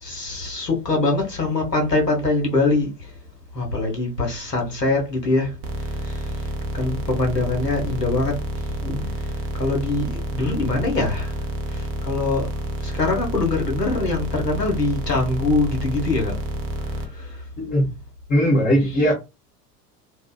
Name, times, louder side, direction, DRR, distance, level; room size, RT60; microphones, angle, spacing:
voice 1, 0.0-2.9 3.5-5.6 6.1-6.2 6.7-8.3 9.6-11.3 11.7-12.5 12.8-16.4 17.1-17.3 18.8-19.1, left 3 dB, 85° left, 1.0 m, -23 dB
sound 1, 5.6-17.1, right 1 dB, 25° right, 0.6 m, -29 dB
voice 2, 8.8-9.1 17.6-17.9 18.3-19.1, equal, 20° left, 0.7 m, -20 dB
2.7 x 2.1 x 2.3 m
figure-of-eight pair, 80°, 47 cm